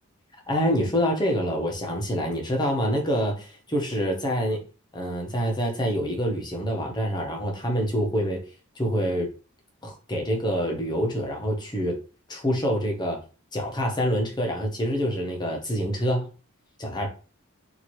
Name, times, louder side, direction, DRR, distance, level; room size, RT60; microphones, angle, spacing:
voice 1, 0.5-4.6 4.9-8.4 8.8-9.3 9.8-12.0 12.3-13.2 13.5-16.3 16.8-17.1, equal, 20° left, 0.9 m, -26 dB
4.3 x 2.8 x 3.1 m
head